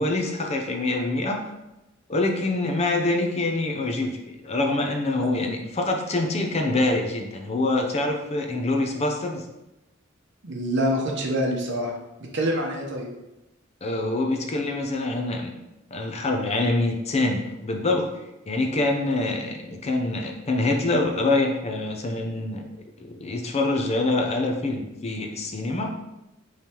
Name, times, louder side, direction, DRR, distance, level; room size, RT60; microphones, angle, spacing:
voice 1, 0.0-1.4 2.1-9.4 13.8-15.5 15.9-18.0 18.5-22.7 23.0-25.9, left 2 dB, 35° left, 3 dB, 0.5 m, -25 dB
voice 2, 10.4-11.9 12.3-13.1, equal, 60° right, 1 dB, 0.8 m, -25 dB
5.2 x 3.2 x 2.9 m, 0.95 s
head